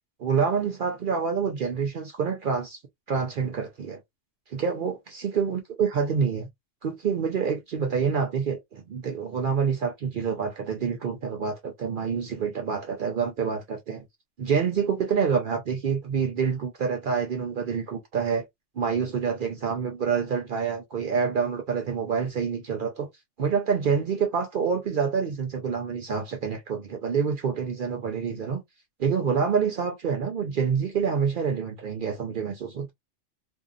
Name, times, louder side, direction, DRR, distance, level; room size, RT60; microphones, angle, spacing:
voice 1, 0.2-2.8 3.1-4.0 4.5-6.5 6.8-14.0 14.4-18.4 18.8-23.1 23.4-28.6 29.0-32.9, right 6 dB, 55° right, 0.6 m, -27 dB
2.7 x 2.4 x 2.4 m
omnidirectional pair, 1.3 m